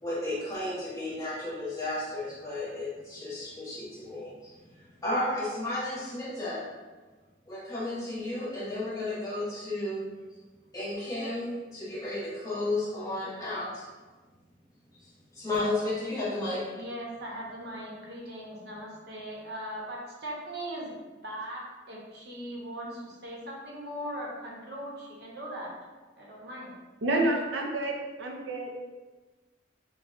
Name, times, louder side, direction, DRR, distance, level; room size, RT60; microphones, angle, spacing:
voice 1, 0.0-6.6 7.5-10.0 10.7-13.9 14.9-15.1 15.3-16.6, left 2 dB, 20° left, -9 dB, 1.2 m, -33 dB
voice 2, 16.7-20.9 21.2-25.7 26.2-26.7 27.1-27.2, equal, 55° right, -4 dB, 1.0 m, -39 dB
voice 3, 27.0-28.8, right 1 dB, 80° right, 0 dB, 0.6 m, -29 dB
6.1 x 2.3 x 2.6 m, 1.3 s
head